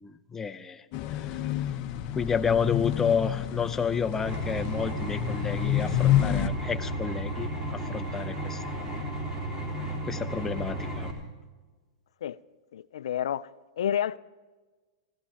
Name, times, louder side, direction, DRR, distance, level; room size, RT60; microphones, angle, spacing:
voice 1, 0.0-0.8 2.1-8.9 10.1-11.1, left 6 dB, 10° left, 0.6 m, -30 dB
sound 1, 0.9-6.5, left 12 dB, 40° left, 0.8 m, -29 dB
sound 2, 4.3-11.1, right 1 dB, 25° right, 3.5 m, -33 dB
voice 2, 12.7-13.5 13.8-14.2, left 10 dB, 80° left, 0.3 m, -29 dB
15.5 x 14.5 x 4.9 m
hypercardioid pair, 125°, 3 cm